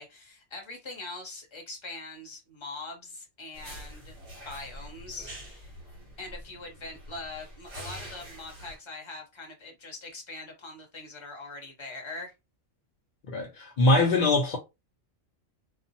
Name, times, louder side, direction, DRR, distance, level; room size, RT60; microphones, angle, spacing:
voice 1, 0.0-4.1 4.4-5.7 6.2-12.3, left 3 dB, 30° left, 0.6 m, -42 dB
sound 1, 3.5-8.8, equal, 55° right, 1.4 m, -45 dB
voice 2, 13.3-14.6, left 2 dB, 75° left, 0.4 m, -23 dB
2.6 x 2.3 x 2.6 m
omnidirectional pair, 1.4 m